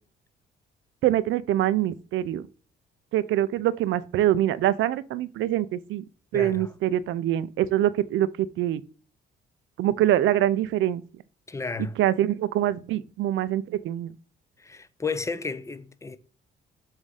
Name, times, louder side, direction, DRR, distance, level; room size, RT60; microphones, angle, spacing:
voice 1, 1.0-2.4 3.1-6.0 6.3-8.8 9.8-11.0 12.0-14.1, right 12 dB, 80° right, 0.5 m, -24 dB
voice 2, 6.3-6.7 11.5-12.0 14.6-16.2, left 4 dB, 15° left, 0.5 m, -32 dB
7.3 x 2.6 x 4.8 m
cardioid pair, 90°, 20 cm